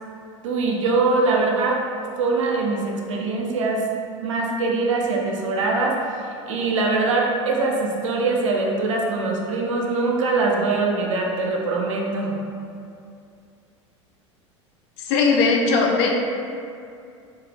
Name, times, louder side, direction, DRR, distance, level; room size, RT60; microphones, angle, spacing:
voice 1, 0.4-1.8 2.2-3.8 4.2-6.0 6.5-12.4, right 3 dB, 80° right, 0 dB, 0.5 m, -22 dB
voice 2, 15.1-16.2, left 4 dB, 60° left, 0 dB, 0.5 m, -18 dB
3.2 x 2.4 x 2.3 m, 2.5 s
hypercardioid pair, 85°, 16 cm